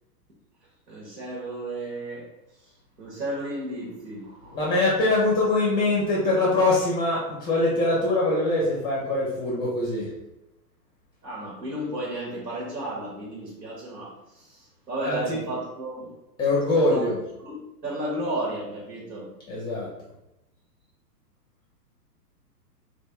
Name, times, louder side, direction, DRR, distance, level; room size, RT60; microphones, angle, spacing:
voice 1, 0.9-2.3 2.6-4.7 11.2-16.2 16.9-17.1 17.4-19.3, right 1 dB, 85° right, -4 dB, 1.4 m, -33 dB
voice 2, 4.5-10.1 15.0-15.4 16.4-17.2 19.5-19.9, left 2 dB, 10° left, -4 dB, 0.5 m, -23 dB
3.4 x 2.6 x 3.4 m, 0.95 s
hypercardioid pair, 130°, 49 cm